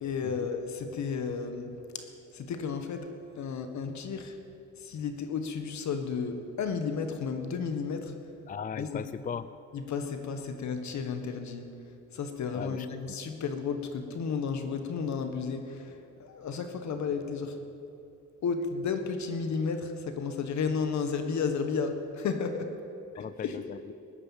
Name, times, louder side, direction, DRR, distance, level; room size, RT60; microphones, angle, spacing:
voice 1, 0.0-2.1 2.3-3.1 3.4-4.4 4.8-8.2 8.8-9.0 9.7-11.7 12.1-17.6 18.4-22.7 23.1-23.6, left 5 dB, 65° left, 7 dB, 1.6 m, -33 dB
voice 2, 8.5-9.6 12.5-12.9 23.2-23.9, left 7 dB, 30° left, 14 dB, 0.4 m, -38 dB
18.0 x 9.9 x 7.5 m, 2.7 s
cardioid pair, 90°, 30 cm